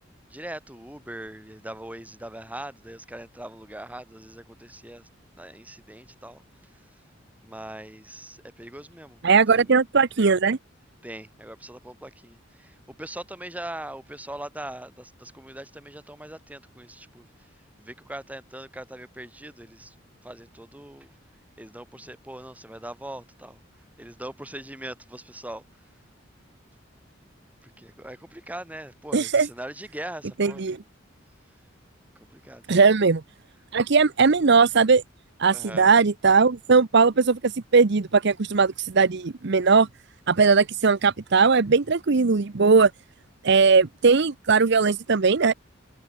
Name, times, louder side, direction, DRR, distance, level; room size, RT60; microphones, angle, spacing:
voice 1, 0.3-5.1 5.3-6.4 6.7-6.8 7.4-9.2 9.5-9.7 11.0-19.9 20.2-21.1 21.6-23.6 24.0-25.6 27.6-30.7 32.1-32.8 35.5-35.9, right 1 dB, 10° right, 4.8 m, -41 dB
voice 2, 9.2-10.6 29.1-29.5 30.4-30.8 32.7-33.2 33.7-35.0 35.4-39.9 40.3-42.9 43.4-45.5, right 4 dB, 60° right, 0.8 m, -19 dB
head